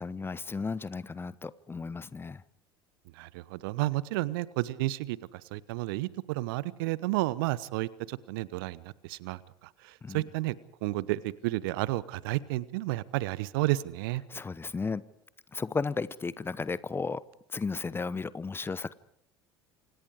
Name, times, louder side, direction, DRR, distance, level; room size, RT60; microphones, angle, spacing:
voice 1, 0.0-2.4 10.0-10.2 14.3-15.0 15.5-17.2 17.5-18.9, left 4 dB, 15° left, 19 dB, 0.9 m, -34 dB
voice 2, 3.2-10.5 10.8-14.2, right 18 dB, 60° right, 20 dB, 1.0 m, -32 dB
28.0 x 26.0 x 5.0 m, 0.71 s
figure-of-eight pair, 65°, 13 cm